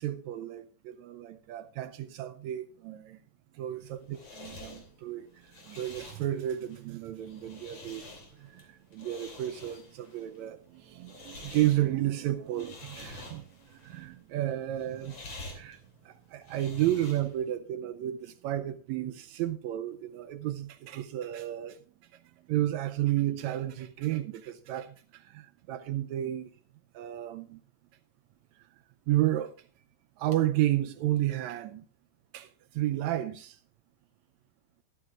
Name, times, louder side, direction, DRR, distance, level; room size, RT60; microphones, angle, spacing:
voice 1, 0.0-3.2 3.5-5.3 5.6-8.1 8.4-15.2 15.5-15.8 16.0-21.8 22.5-26.5 26.9-27.6 29.1-29.6 30.2-31.8 32.3-32.5 32.7-33.6, right 13 dB, 80° right, 1.8 m, -32 dB
sound 1, 3.7-17.5, left 2 dB, 55° left, 3.9 m, -49 dB
13.5 x 13.0 x 2.4 m
omnidirectional pair, 3.4 m